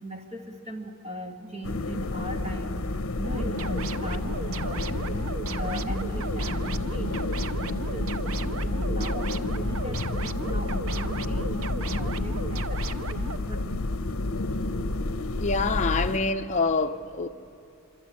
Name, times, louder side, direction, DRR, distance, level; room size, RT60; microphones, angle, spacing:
voice 1, 0.0-14.1, right 1 dB, 30° right, 2.3 m, -40 dB
Snowy day ambience, 1.6-16.2, left 2 dB, 70° left, 0.8 m, -30 dB
sound 1, 3.2-13.4, right 4 dB, 70° right, 0.7 m, -36 dB
voice 2, 15.4-17.3, left 4 dB, 35° left, 0.8 m, -26 dB
26.0 x 23.5 x 8.8 m
head